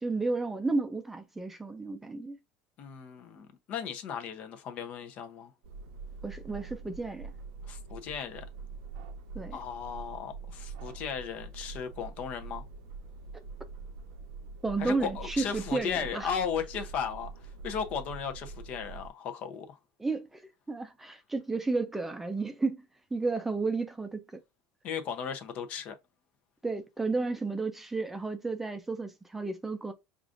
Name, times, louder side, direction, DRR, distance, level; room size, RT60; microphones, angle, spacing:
voice 1, 0.0-2.4 6.2-7.3 9.3-9.6 14.6-16.3 20.0-20.4 20.7-22.8 23.1-24.2 26.6-29.9, right 3 dB, 10° right, 0.5 m, -32 dB
voice 2, 2.8-5.5 7.7-8.4 9.5-12.6 14.8-17.3 17.6-19.8 24.8-26.0, left 7 dB, 50° left, 0.7 m, -36 dB
sound 1, 5.6-19.1, right 4 dB, 80° right, 0.6 m, -44 dB
4.8 x 2.5 x 2.5 m
supercardioid pair, 135°, 3 cm